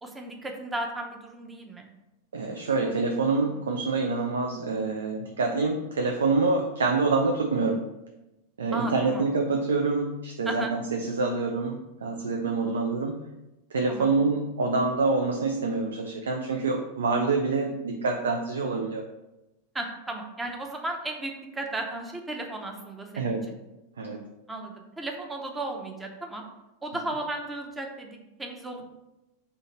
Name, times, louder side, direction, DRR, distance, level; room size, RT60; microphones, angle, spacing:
voice 1, 0.0-1.9 8.7-9.2 10.5-10.7 13.9-14.2 19.7-23.5 24.5-26.4 26.8-28.8, right 2 dB, 10° right, 3 dB, 0.6 m, -35 dB
voice 2, 2.3-7.8 8.6-13.2 13.7-19.0 23.2-23.5 24.0-24.2, right 3 dB, 70° right, 3 dB, 0.4 m, -26 dB
3.7 x 2.8 x 4.3 m, 0.98 s
figure-of-eight pair, 90°, 0 cm